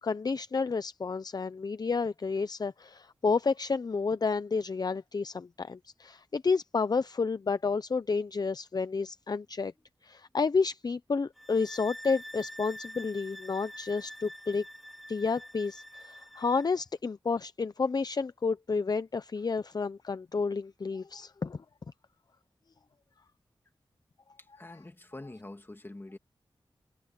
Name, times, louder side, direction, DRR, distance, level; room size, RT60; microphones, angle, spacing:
voice 1, 0.0-9.7 10.0-14.6 15.1-21.6, left 4 dB, 45° left, 0.6 m, -30 dB
sound 1, 11.4-16.7, equal, ahead, 3.6 m, -46 dB
voice 2, 24.4-26.2, left 2 dB, 25° left, 2.4 m, -45 dB
wide cardioid pair, 75°, 9 cm